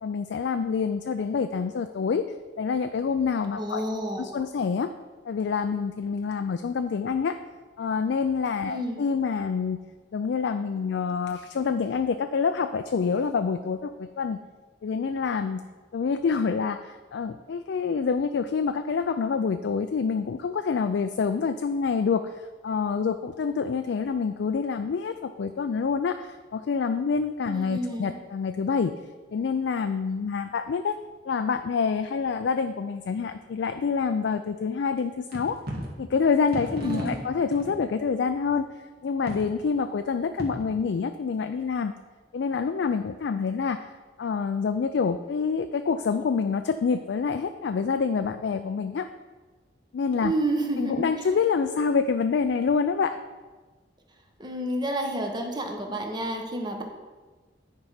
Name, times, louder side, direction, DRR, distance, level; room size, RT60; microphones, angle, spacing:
voice 1, 0.0-2.2 2.6-3.8 4.2-4.9 5.3-7.4 7.8-9.8 10.1-14.4 14.8-15.6 15.9-28.9 29.3-31.0 31.2-35.6 36.0-38.7 39.0-41.9 42.3-43.9 44.2-49.1 49.9-50.3 50.8-53.2, left 5 dB, 65° left, 8 dB, 0.4 m, -27 dB
voice 2, 3.6-4.3 8.6-9.0 27.5-28.2 36.8-37.2 50.2-51.3 54.4-56.8, right 1 dB, 25° right, 2 dB, 1.1 m, -30 dB
sound 1, 35.0-35.1 35.3-35.9 36.5-37.8 38.3-38.4 39.3-39.6 40.4-40.7, right 1 dB, 55° right, 1.7 m, -35 dB
9.6 x 4.7 x 5.7 m, 1.3 s
head